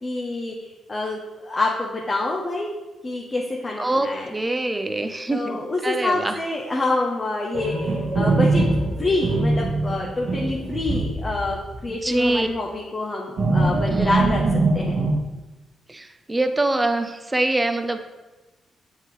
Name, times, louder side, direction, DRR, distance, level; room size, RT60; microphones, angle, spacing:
voice 1, 0.0-2.7 3.0-4.3 5.3-8.7 9.0-14.4 14.7-14.9, left 2 dB, 35° left, -1 dB, 0.9 m, -26 dB
voice 2, 3.8-6.4 11.9-12.5 13.9-14.2 15.9-18.0, right 2 dB, 20° right, 7 dB, 0.7 m, -24 dB
sound 1, 7.5-11.8 12.1-12.3 13.4-15.1, right 2 dB, 70° right, 1.7 m, -22 dB
7.1 x 4.6 x 3.2 m, 1.1 s
supercardioid pair, 55°, 0 cm